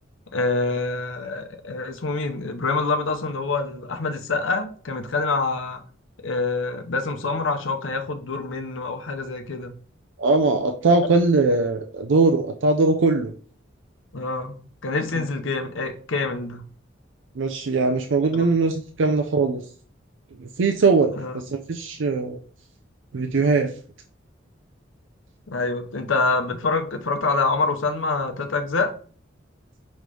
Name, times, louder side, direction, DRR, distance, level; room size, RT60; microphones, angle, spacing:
voice 1, 0.3-5.8 6.2-9.7 14.1-14.5 14.8-16.6 18.3-18.5 21.2-21.3 25.5-28.9, left 3 dB, 90° left, 0.7 m, -26 dB
voice 2, 10.2-13.3 15.2-15.3 17.4-19.6 20.4-22.4 23.1-23.7, right 3 dB, 75° right, 0.5 m, -21 dB
5.3 x 3.1 x 3.2 m
head